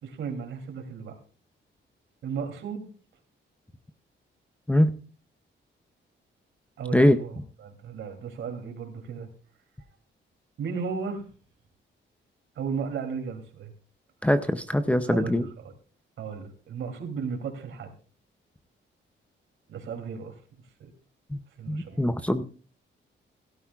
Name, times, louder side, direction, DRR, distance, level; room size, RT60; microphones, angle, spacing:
voice 1, 0.0-1.1 2.2-2.8 6.8-7.3 7.6-9.3 10.6-11.2 12.5-13.7 15.1-15.7 16.2-17.9 19.7-20.4 20.8-20.9 21.6-22.0, right 6 dB, 75° right, 5 dB, 2.9 m, -35 dB
voice 2, 14.2-15.5 21.3-21.4 21.7-22.4, left 1 dB, 5° left, 7 dB, 0.5 m, -22 dB
17.0 x 12.5 x 2.3 m, 0.39 s
wide cardioid pair, 175°, 20 cm